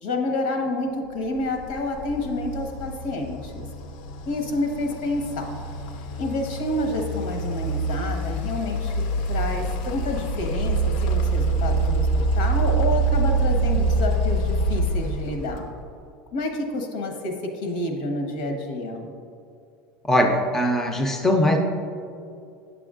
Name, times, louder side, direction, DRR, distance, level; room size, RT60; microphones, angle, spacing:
voice 1, 0.0-3.6 4.3-5.6 6.2-8.9 9.3-12.1 12.3-15.7 16.3-19.1, left 2 dB, 85° left, 3 dB, 1.2 m, -28 dB
sound 1, 1.4-15.8, right 2 dB, 65° left, 0.5 m, -25 dB
voice 2, 20.1-21.6, left 1 dB, 10° left, 3 dB, 0.4 m, -20 dB
8.9 x 6.9 x 2.4 m, 2.5 s
supercardioid pair, 170°, 5 cm